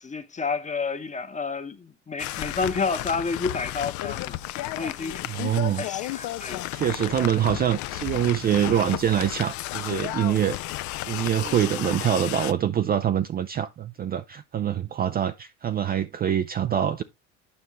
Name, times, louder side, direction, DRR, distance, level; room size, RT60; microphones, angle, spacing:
voice 1, 0.0-4.4 4.7-7.1 11.4-11.7, left 4 dB, 20° left, 0.9 m, -31 dB
sound 1, 2.2-12.5, left 16 dB, 55° left, 0.5 m, -33 dB
voice 2, 5.3-5.8 6.7-10.6 11.1-17.0, right 10 dB, 25° right, 0.4 m, -25 dB
9.5 x 5.4 x 3.0 m
hypercardioid pair, 75°, 36 cm